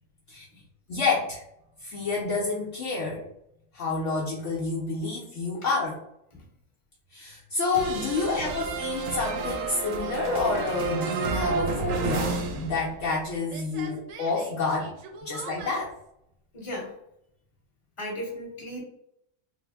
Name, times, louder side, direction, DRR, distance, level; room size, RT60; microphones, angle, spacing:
voice 1, 0.9-1.4 1.8-3.2 3.7-5.9 7.1-14.9 15.2-15.9, left 3 dB, 65° left, -4 dB, 0.9 m, -29 dB
sound 1, 7.7-13.2 13.5-15.8, right 4 dB, 75° right, 0.9 m, -31 dB
voice 2, 16.5-17.0 18.0-18.8, equal, 25° left, -5 dB, 1.1 m, -36 dB
3.3 x 2.0 x 3.4 m, 0.77 s
omnidirectional pair, 1.5 m